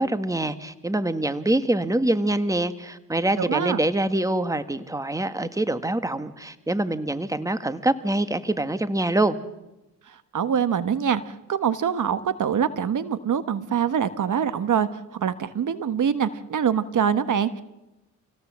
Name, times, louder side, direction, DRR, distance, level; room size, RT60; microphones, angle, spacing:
voice 1, 0.0-9.4, right 1 dB, 10° right, 11 dB, 1.6 m, -25 dB
voice 2, 3.4-3.8 10.1-17.6, right 8 dB, 55° right, 12 dB, 1.4 m, -24 dB
27.0 x 17.0 x 7.5 m, 0.96 s
supercardioid pair, 65°, 36 cm